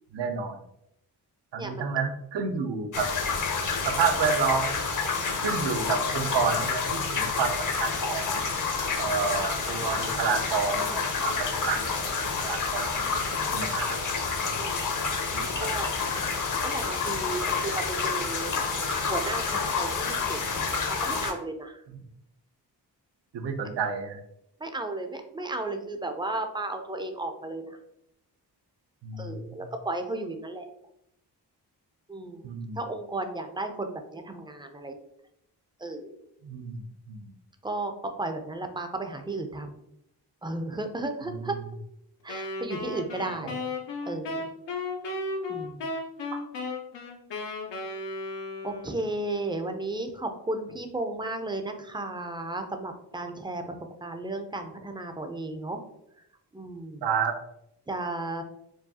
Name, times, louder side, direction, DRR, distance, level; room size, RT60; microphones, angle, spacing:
voice 1, 0.1-0.6 1.5-3.1 3.8-4.8 5.4-8.3 9.0-13.2 13.5-14.4 15.3-15.5 23.3-24.2 29.0-29.6 32.4-32.8 36.4-37.3 41.3-41.4 46.3-46.4 57.0-57.3, right 5 dB, 85° right, 7 dB, 0.6 m, -30 dB
voice 2, 1.6-1.9 14.5-14.9 15.6-15.9 16.6-18.5 19.1-21.8 24.6-27.8 29.2-30.6 32.1-32.5 32.8-35.0 35.8-36.2 37.6-37.9 38.2-39.8 40.4-41.6 42.2-43.6 44.1-44.5 45.5-45.9 48.6-53.8 54.0-55.8 56.5-57.1 57.9-58.4, right 2 dB, 10° right, 6 dB, 0.4 m, -34 dB
sound 1, 2.9-21.3, left 5 dB, 50° left, 0.7 m, -29 dB
Wind instrument woodwind instrument, 42.3-49.1, left 2 dB, 90° left, 0.7 m, -35 dB
4.6 x 2.3 x 2.7 m, 0.78 s
wide cardioid pair, 90°, 41 cm